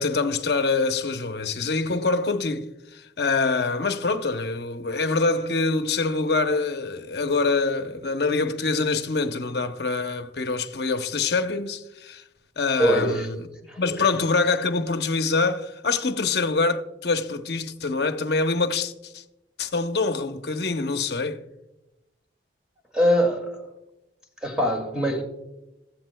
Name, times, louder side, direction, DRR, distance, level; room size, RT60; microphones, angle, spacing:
voice 1, 0.0-12.2 12.6-13.4 13.8-19.2 19.6-21.4, left 3 dB, 65° left, 0.8 m, -25 dB
voice 2, 12.8-13.3 13.7-14.1 22.9-23.7 24.4-25.2, equal, 5° right, 2.1 m, -23 dB
15.5 x 14.0 x 2.2 m
head